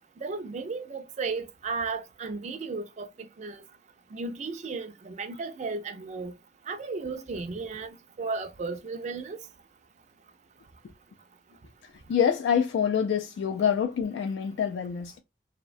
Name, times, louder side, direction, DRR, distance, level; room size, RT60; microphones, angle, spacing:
voice 1, 0.2-3.1 3.4-3.6 4.1-6.3 6.7-9.4, right 4 dB, 40° right, 0.3 m, -34 dB
voice 2, 12.1-15.2, left 7 dB, 80° left, 0.3 m, -26 dB
2.7 x 2.1 x 2.4 m
head